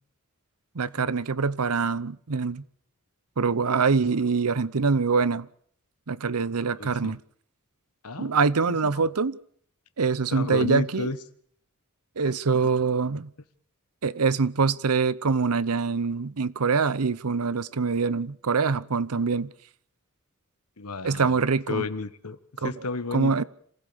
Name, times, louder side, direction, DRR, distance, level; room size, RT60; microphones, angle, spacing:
voice 1, 0.7-2.6 3.4-5.5 6.1-7.2 8.2-9.4 10.0-11.1 12.2-13.3 14.0-19.5 21.0-21.8 22.6-22.7 23.1-23.4, right 5 dB, 85° right, 0.8 m, -24 dB
voice 2, 6.8-7.2 8.0-8.4 8.7-9.0 10.3-11.2 12.2-12.4 20.8-21.4 21.7-23.4, left 3 dB, 90° left, 1.3 m, -33 dB
27.0 x 15.5 x 7.0 m
head